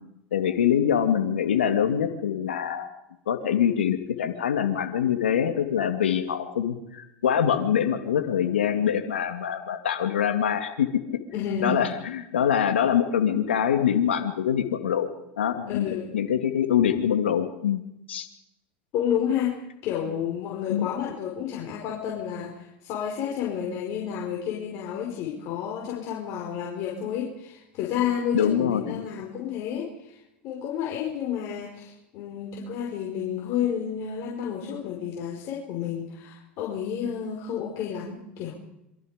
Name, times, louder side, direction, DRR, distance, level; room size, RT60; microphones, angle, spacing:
voice 1, 0.3-2.9 3.3-11.2 11.6-15.1 15.4-15.9 16.1-17.8 18.1-18.3 20.7-20.9 28.3-29.0, left 9 dB, 90° left, 6 dB, 2.4 m, -24 dB
voice 2, 11.3-11.8 15.7-16.2 18.9-30.2 30.4-38.5, left 8 dB, 55° left, -1 dB, 5.4 m, -30 dB
27.0 x 24.0 x 5.2 m, 0.84 s
hypercardioid pair, 90°, 6 cm